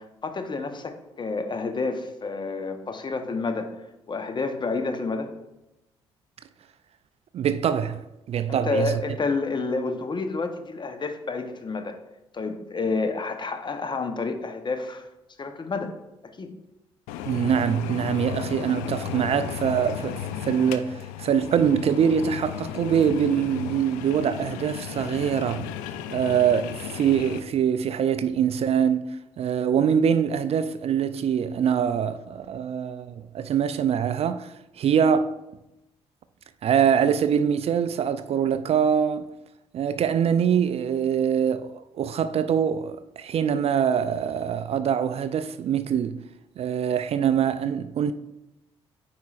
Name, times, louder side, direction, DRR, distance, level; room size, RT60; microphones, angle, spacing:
voice 1, 0.0-3.7 4.1-5.3 8.5-12.0 12.3-15.0 15.4-15.9 16.4-16.5, left 3 dB, 35° left, 0.9 m, -29 dB
voice 2, 7.3-8.0 8.3-9.0 17.3-25.7 26.1-35.4 36.6-39.3 39.7-46.2 46.6-48.1, right 8 dB, 50° right, 0.4 m, -24 dB
sound 1, 17.1-27.4, left 10 dB, 75° left, 0.4 m, -34 dB
9.3 x 4.8 x 2.4 m
hypercardioid pair, 50°, 14 cm